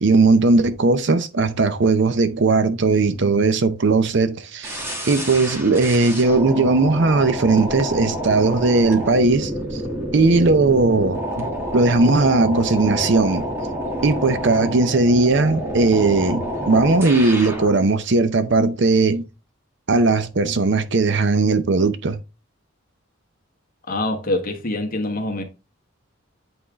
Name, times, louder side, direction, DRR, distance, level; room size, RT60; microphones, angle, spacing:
voice 1, 0.0-9.8 10.1-11.5 11.7-13.5 14.0-19.3 19.9-22.2, right 3 dB, 60° right, 0.6 m, -18 dB
sound 1, 4.6-17.8, equal, 10° right, 1.3 m, -28 dB
voice 2, 23.9-25.4, left 1 dB, 45° left, 1.2 m, -25 dB
8.6 x 3.6 x 3.5 m
head